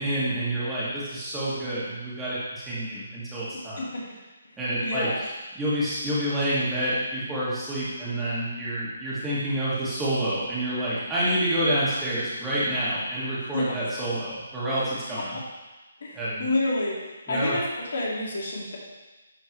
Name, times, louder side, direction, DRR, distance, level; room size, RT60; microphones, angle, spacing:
voice 1, 0.0-3.8 4.6-5.1 5.6-15.4 16.1-16.5 17.3-17.6, right 1 dB, 10° right, -10 dB, 2.0 m, -28 dB
voice 2, 3.5-4.0 4.8-5.2 13.5-13.7 15.3-15.4 16.0-17.6 17.9-18.8, left 2 dB, 65° left, -4 dB, 2.1 m, -29 dB
11.0 x 4.4 x 3.1 m, 1.2 s
hypercardioid pair, 155°, 0 cm